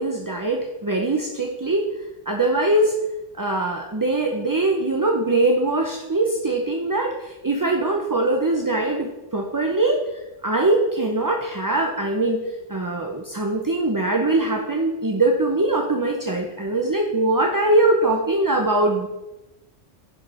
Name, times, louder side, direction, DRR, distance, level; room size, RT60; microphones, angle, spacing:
voice 1, 0.0-1.8 2.3-2.9 3.4-10.0 10.4-12.4 12.7-19.1, right 2 dB, 25° right, 1 dB, 0.5 m, -22 dB
10.5 x 4.8 x 4.8 m, 1.0 s
omnidirectional pair, 1.2 m